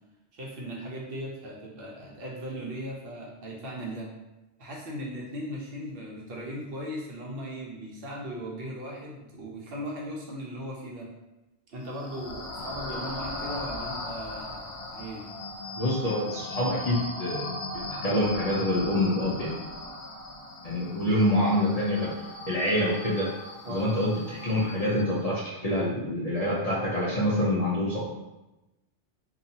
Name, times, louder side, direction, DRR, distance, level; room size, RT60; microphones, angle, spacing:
voice 1, 0.3-4.2 4.6-11.1 11.7-14.6 14.9-15.2 23.6-23.9, equal, 65° right, -3 dB, 0.8 m, -38 dB
sound 1, 11.8-25.2, left 1 dB, 75° left, 0.9 m, -38 dB
voice 2, 15.7-17.5 18.0-19.5 20.6-22.1 22.5-23.3 23.7-28.1, left 1 dB, 50° left, -7 dB, 0.5 m, -26 dB
2.7 x 2.3 x 2.7 m, 1.0 s
omnidirectional pair, 1.1 m